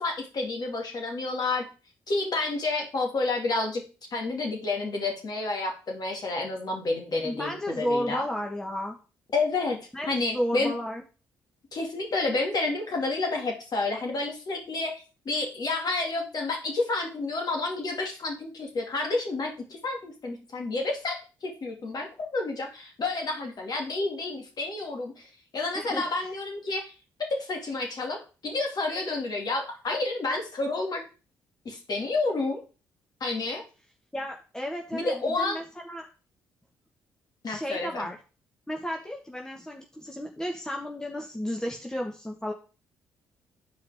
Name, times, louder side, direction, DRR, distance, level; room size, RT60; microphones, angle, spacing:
voice 1, 0.0-1.6 2.1-3.8 4.1-8.2 9.3-9.8 10.1-10.7 11.7-14.9 15.3-26.9 27.3-31.0 31.6-32.6 33.2-33.6 34.9-35.6 37.4-38.1, left 3 dB, 45° left, 1 dB, 2.4 m, -30 dB
voice 2, 7.2-9.0 9.9-10.1 10.3-11.0 25.7-26.1 34.1-36.1 37.5-38.2 38.7-42.5, equal, 5° left, 1 dB, 1.3 m, -33 dB
10.0 x 4.8 x 3.5 m, 0.34 s
figure-of-eight pair, 45°, 9 cm